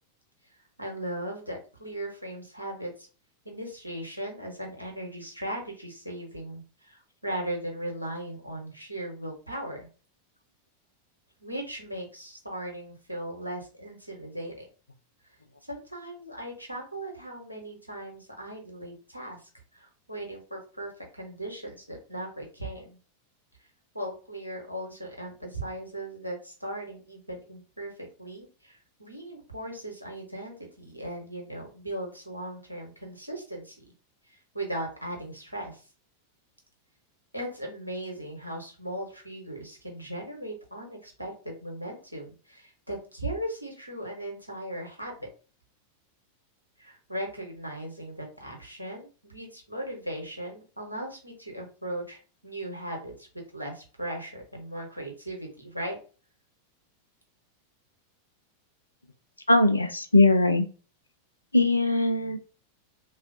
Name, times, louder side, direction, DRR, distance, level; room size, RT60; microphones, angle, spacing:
voice 1, 0.8-3.1 3.4-9.9 11.4-14.6 15.7-19.4 19.7-23.0 23.9-33.8 34.3-35.8 37.3-45.3 46.8-53.3 53.5-56.0, right 1 dB, 90° right, 2 dB, 0.9 m, -38 dB
voice 2, 59.5-60.7 61.5-62.4, left 2 dB, 80° left, 9 dB, 0.4 m, -20 dB
3.3 x 2.4 x 2.5 m, 0.36 s
figure-of-eight pair, 90°, 0 cm